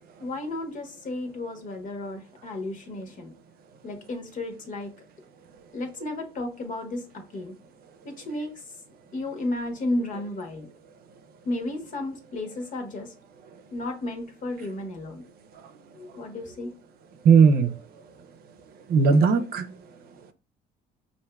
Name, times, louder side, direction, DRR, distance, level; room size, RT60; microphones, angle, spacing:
voice 1, 0.2-3.3 3.8-4.9 5.7-7.6 8.0-8.6 9.1-10.7 11.4-13.1 13.7-15.2 15.9-16.7, left 2 dB, 50° left, 1.2 m, -33 dB
voice 2, 17.2-17.8 18.9-19.7, right 5 dB, 65° right, 0.6 m, -18 dB
5.5 x 2.7 x 2.3 m
cardioid pair, 110°, 17 cm